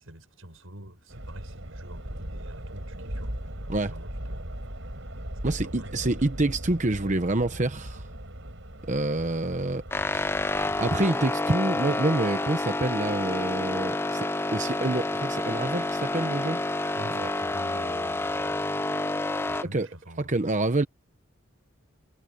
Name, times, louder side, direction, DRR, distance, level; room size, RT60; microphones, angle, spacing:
voice 1, 0.0-3.5 3.8-4.9 5.4-6.2 8.8-8.9 17.0-19.1 19.4-20.4, right 1 dB, 90° right, 6.3 m, -46 dB
sound 1, 1.1-11.1, right 1 dB, 65° right, 6.3 m, -38 dB
voice 2, 5.4-8.1 8.9-9.8 10.1-10.2 10.8-16.6 17.1-17.3 19.7-19.9 20.3-20.9, right 2 dB, 35° right, 1.0 m, -27 dB
sound 2, 9.9-19.6, left 2 dB, 10° left, 0.5 m, -29 dB
head